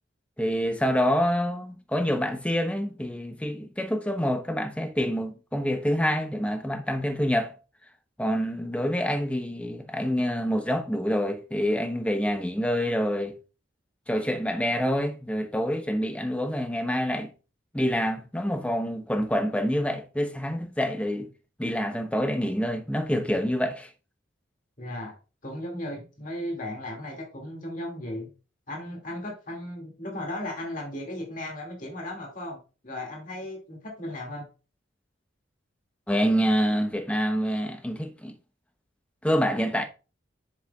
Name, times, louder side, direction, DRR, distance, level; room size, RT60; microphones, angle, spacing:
voice 1, 0.4-7.5 8.2-13.3 14.1-17.3 17.7-21.3 21.6-23.9 36.1-38.3 39.2-39.8, equal, 5° left, 0.7 m, -27 dB
voice 2, 24.8-25.1 25.4-28.3 28.7-32.6 32.8-34.5, left 1 dB, 40° left, 2.2 m, -36 dB
7.4 x 6.5 x 2.3 m
head